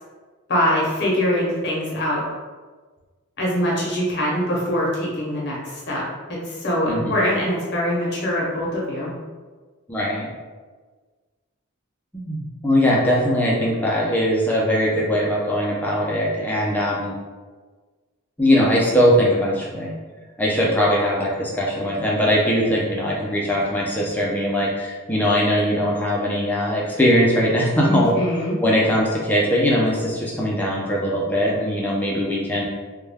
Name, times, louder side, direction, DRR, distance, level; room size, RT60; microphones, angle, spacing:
voice 1, 0.5-2.2 3.4-9.1 27.8-28.5, equal, 50° left, -5 dB, 0.7 m, -23 dB
voice 2, 9.9-10.3 12.1-17.1 18.4-19.9 20.4-28.1 28.6-32.7, equal, 10° left, -4 dB, 0.4 m, -20 dB
2.2 x 2.2 x 3.3 m, 1.4 s
head